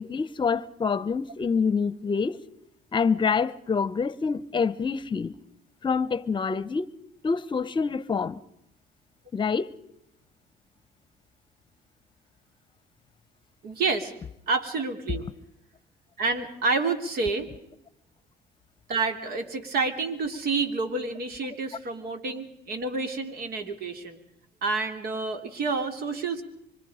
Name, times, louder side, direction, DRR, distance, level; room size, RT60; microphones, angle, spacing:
voice 1, 0.0-2.4 2.9-5.4 5.8-6.9 7.2-8.4 9.3-9.7, left 5 dB, 30° left, 0.9 m, -26 dB
voice 2, 13.6-14.1 14.5-15.3 16.2-17.5 18.9-24.2 24.6-26.4, right 4 dB, 65° right, 3.3 m, -29 dB
25.5 x 25.5 x 5.1 m
cardioid pair, 110°, 17 cm